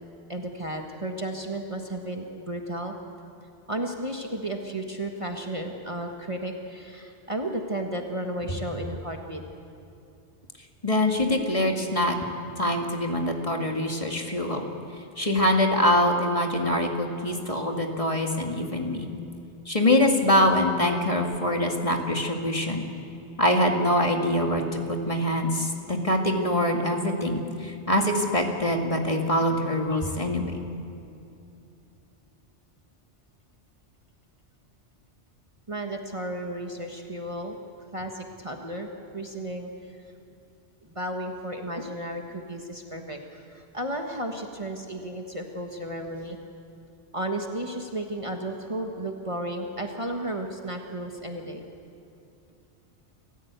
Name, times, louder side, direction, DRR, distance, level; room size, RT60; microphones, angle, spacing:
voice 1, 0.3-2.9 3.7-9.4 35.7-37.6 37.9-40.0 40.8-46.4 47.1-51.7, right 1 dB, 30° right, 2 dB, 1.5 m, -33 dB
voice 2, 10.8-12.2 12.6-14.6 15.2-19.1 19.7-22.8 23.4-30.6, left 1 dB, 30° left, 2 dB, 2.1 m, -24 dB
28.0 x 15.0 x 8.2 m, 2.7 s
omnidirectional pair, 1.2 m